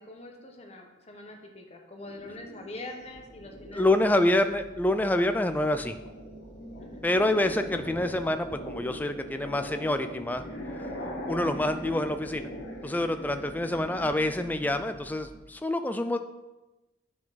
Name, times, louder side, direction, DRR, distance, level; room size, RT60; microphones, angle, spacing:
voice 1, 0.0-4.3 6.8-7.0, left 2 dB, 35° left, 3 dB, 0.9 m, -44 dB
sound 1, 2.0-4.0 4.6-5.0 5.4-14.2, equal, 55° left, 1.4 m, -41 dB
sound 2, 3.0-15.4, right 1 dB, 70° right, 2.4 m, -49 dB
voice 2, 3.7-6.0 7.0-10.4 10.8-10.9 11.3-12.5 12.8-16.2, left 1 dB, 10° left, 8 dB, 0.3 m, -27 dB
9.8 x 4.6 x 3.9 m, 1.1 s
head